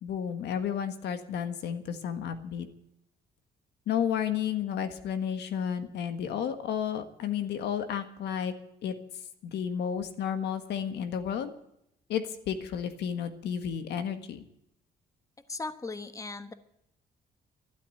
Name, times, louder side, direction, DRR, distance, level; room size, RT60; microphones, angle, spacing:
voice 1, 0.0-2.7 3.9-8.5 8.8-8.9 9.4-11.5 12.1-14.4, left 8 dB, 80° left, 9 dB, 1.6 m, -32 dB
voice 2, 15.5-16.5, left 3 dB, 20° left, 10 dB, 1.2 m, -37 dB
12.5 x 12.0 x 7.8 m, 0.79 s
cardioid pair, 100°, 17 cm